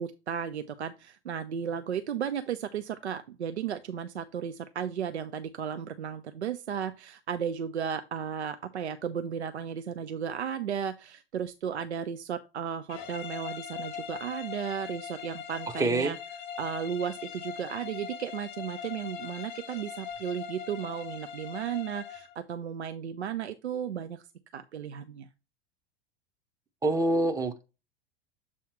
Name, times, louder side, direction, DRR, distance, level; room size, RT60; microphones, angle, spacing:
voice 1, 0.0-16.2 16.6-24.2 24.5-25.3, right 8 dB, 80° right, 0.5 m, -34 dB
sound 1, 12.9-22.4, left 8 dB, 35° left, 0.7 m, -41 dB
voice 2, 15.8-16.1 26.8-27.6, right 2 dB, 10° right, 0.7 m, -26 dB
7.2 x 2.8 x 4.7 m
figure-of-eight pair, 85°, 33 cm